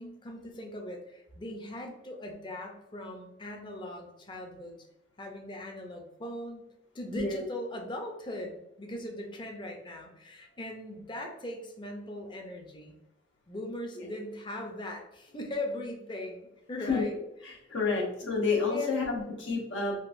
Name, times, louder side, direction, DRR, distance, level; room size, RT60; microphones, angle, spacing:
voice 1, 0.0-4.8 5.2-6.6 6.9-13.0 13.5-17.2 18.2-19.0, left 1 dB, 25° left, 2 dB, 0.5 m, -39 dB
voice 2, 7.1-7.4 14.0-14.1 16.9-17.1 17.4-19.9, left 4 dB, 85° left, -2 dB, 1.0 m, -30 dB
3.7 x 2.5 x 2.5 m, 0.90 s
head